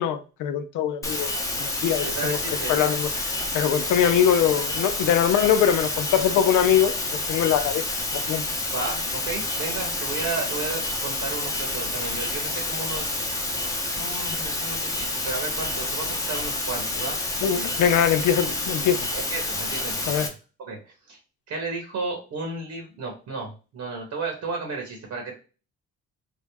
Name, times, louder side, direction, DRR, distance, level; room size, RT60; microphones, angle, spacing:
voice 1, 0.0-2.4 2.7-7.8 8.1-8.4 17.4-19.1 20.1-20.3, left 9 dB, 80° left, 0.5 m, -23 dB
sound 1, 1.0-20.3, left 2 dB, 10° left, 0.7 m, -28 dB
voice 2, 2.0-2.7 8.5-17.2 19.1-20.3 20.6-21.2 21.5-25.3, right 4 dB, 75° right, 1.2 m, -33 dB
3.7 x 2.1 x 3.4 m
cardioid pair, 90°, 30 cm